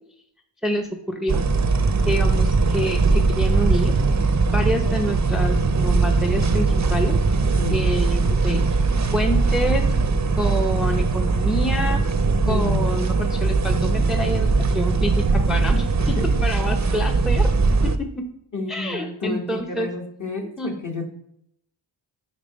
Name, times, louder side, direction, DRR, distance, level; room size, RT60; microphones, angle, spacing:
voice 1, 0.6-1.4 2.1-3.9 4.5-7.2 7.7-8.8 9.1-9.8 10.4-12.0 12.5-16.1 16.4-17.5 17.8-18.2 18.7-19.9 20.6-20.7, equal, ahead, 4 dB, 0.6 m, -27 dB
sound 1, 1.3-18.0, right 3 dB, 35° right, 0.6 m, -20 dB
voice 2, 7.5-7.8 12.4-12.9 16.0-16.4 18.5-21.0, left 3 dB, 40° left, 2 dB, 1.5 m, -30 dB
5.4 x 4.8 x 5.1 m, 0.72 s
cardioid pair, 60°, 47 cm